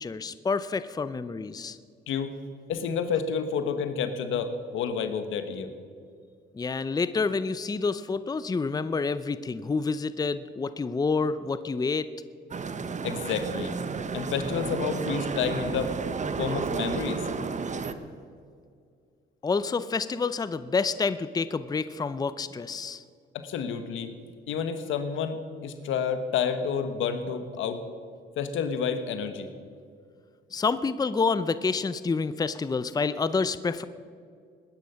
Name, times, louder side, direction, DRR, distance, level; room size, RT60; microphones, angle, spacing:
voice 1, 0.0-1.8 6.5-12.1 19.4-23.0 30.5-33.8, left 4 dB, 20° left, 14 dB, 0.6 m, -28 dB
voice 2, 2.7-5.7 13.0-13.7 14.1-15.9 16.4-17.2 23.3-24.1 24.5-27.8 28.4-29.5, left 6 dB, 85° left, 9 dB, 1.4 m, -29 dB
sound 1, 12.5-17.9, right 5 dB, 35° right, 1.0 m, -32 dB
19.5 x 10.5 x 5.7 m, 2.2 s
cardioid pair, 90°, 20 cm